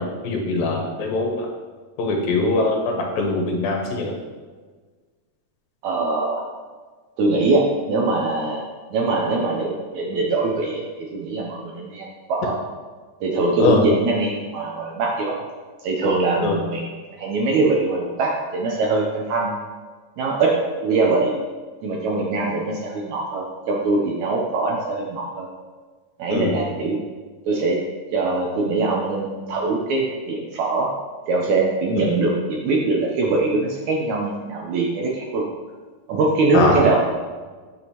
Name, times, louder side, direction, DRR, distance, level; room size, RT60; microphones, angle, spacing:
voice 1, 0.0-1.5 2.0-4.1 13.6-13.8 16.4-16.6 26.3-26.6 32.1-32.2 36.5-36.8, left 3 dB, 85° left, 1 dB, 2.8 m, -22 dB
voice 2, 5.8-6.5 7.2-8.6 8.9-12.5 13.2-15.3 15.8-16.8 17.2-19.7 20.2-20.5 20.8-21.3 21.8-25.5 26.2-27.0 27.5-27.8 28.1-30.9 31.3-35.4 36.1-37.0, right 3 dB, 75° right, -1 dB, 1.8 m, -22 dB
8.6 x 6.2 x 2.9 m, 1.4 s
omnidirectional pair, 4.0 m